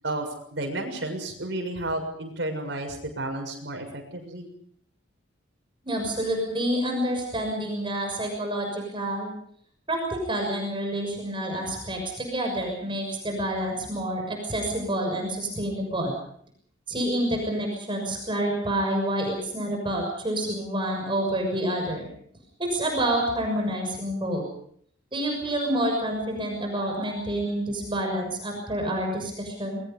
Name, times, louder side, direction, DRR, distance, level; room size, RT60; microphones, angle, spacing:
voice 1, 0.5-4.5, right 2 dB, 65° right, 3 dB, 6.8 m, -32 dB
voice 2, 5.8-9.3 9.9-16.1 16.9-22.0 22.6-24.4 25.1-29.8, right 1 dB, 25° right, 2 dB, 6.4 m, -28 dB
28.5 x 22.0 x 5.4 m, 0.63 s
head